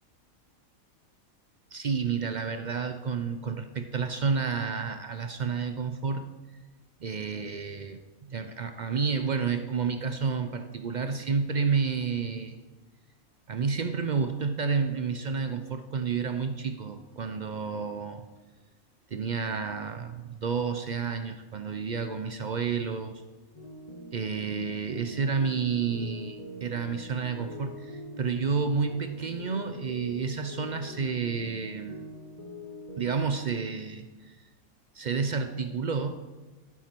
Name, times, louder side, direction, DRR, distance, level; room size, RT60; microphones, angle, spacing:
voice 1, 1.7-6.3 7.0-8.0 8.3-12.6 13.5-18.3 19.1-23.2 24.1-32.0 33.0-34.4 34.9-36.2, right 5 dB, 65° right, 8 dB, 0.4 m, -30 dB
sound 1, 23.5-33.2, equal, 30° left, 0.9 m, -43 dB
11.0 x 9.2 x 4.5 m, 1.3 s
omnidirectional pair, 1.5 m